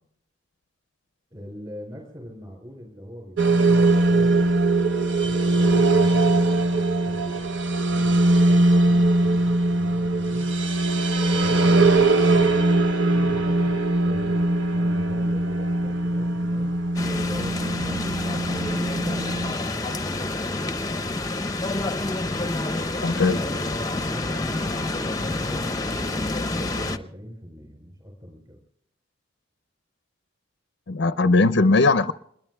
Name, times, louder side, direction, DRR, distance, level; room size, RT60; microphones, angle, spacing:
voice 1, 1.3-4.5 5.2-10.6 11.3-12.6 13.0-13.8 14.0-16.7 17.2-21.6 23.3-28.6, equal, 25° right, 0 dB, 5.3 m, -42 dB
sound 1, 3.4-19.5, right 2 dB, 65° right, 0.8 m, -21 dB
sound 2, 16.9-27.0, left 2 dB, 20° left, 0.7 m, -28 dB
voice 2, 23.0-23.4 30.9-32.1, left 3 dB, 60° left, 12 dB, 0.5 m, -19 dB
27.0 x 21.5 x 2.3 m, 0.72 s
head